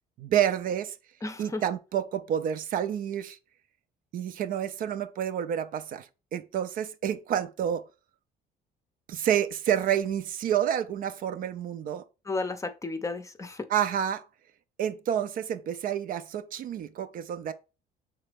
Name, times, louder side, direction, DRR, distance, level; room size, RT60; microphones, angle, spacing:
voice 1, 0.2-0.9 1.4-3.4 4.1-7.8 9.1-12.0 13.7-14.2 14.8-17.5, right 9 dB, 55° right, 0.4 m, -29 dB
voice 2, 1.2-1.6 12.3-13.7, left 3 dB, 20° left, 0.6 m, -33 dB
4.9 x 3.3 x 3.4 m
cardioid pair, 110°, 17 cm